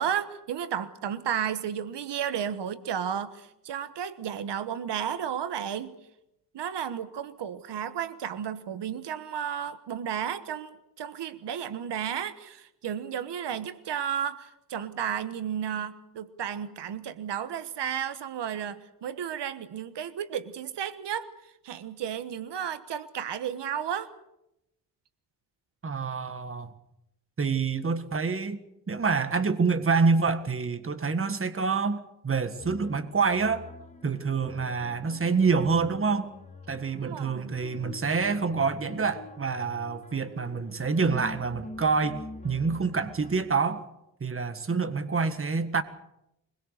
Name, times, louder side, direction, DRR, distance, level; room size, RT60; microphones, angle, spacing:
voice 1, 0.0-5.9 6.5-21.3 21.6-24.1 37.0-37.5, right 9 dB, 80° right, 12 dB, 1.3 m, -33 dB
voice 2, 25.8-26.7 27.4-28.6 28.9-33.7 34.0-36.3 36.7-43.9 44.2-45.8, right 4 dB, 30° right, 10 dB, 1.7 m, -27 dB
sound 1, 32.6-43.4, left 3 dB, 15° left, 2.6 m, -45 dB
23.5 x 21.5 x 6.6 m, 0.84 s
cardioid pair, 110°, 41 cm